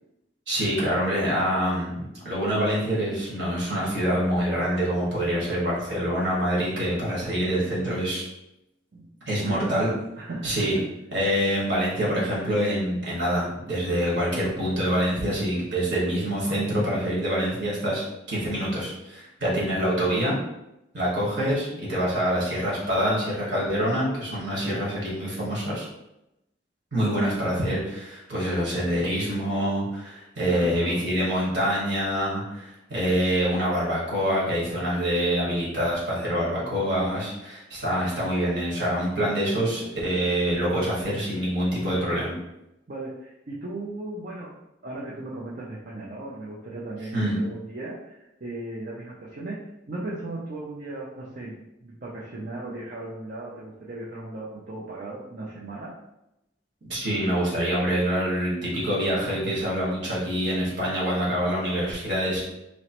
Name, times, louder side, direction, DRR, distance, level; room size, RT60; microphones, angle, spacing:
voice 1, 0.5-8.3 9.3-9.9 10.4-10.7 11.1-20.4 20.9-25.9 26.9-42.4 47.1-47.3 56.9-62.4, equal, 65° right, -6 dB, 1.4 m, -26 dB
voice 2, 9.4-10.8 30.5-31.0 42.9-56.0, right 2 dB, 50° right, -5 dB, 0.5 m, -37 dB
3.0 x 3.0 x 2.9 m, 0.89 s
head